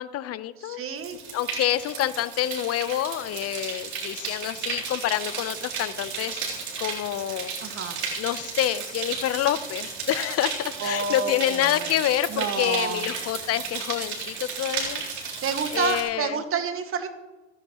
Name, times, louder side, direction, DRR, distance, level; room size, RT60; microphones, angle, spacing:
voice 1, 0.0-0.8 1.1-7.5 8.2-15.0 15.7-16.4, left 13 dB, 45° left, 15 dB, 1.0 m, -27 dB
voice 2, 0.6-1.2 7.6-8.1 10.8-11.9 12.3-13.1 15.4-17.1, right 5 dB, 40° right, 6 dB, 2.0 m, -29 dB
sound 1, 1.0-16.0, right 5 dB, 85° right, 3.9 m, -34 dB
26.5 x 10.5 x 3.2 m, 1.1 s
hypercardioid pair, 70°, 32 cm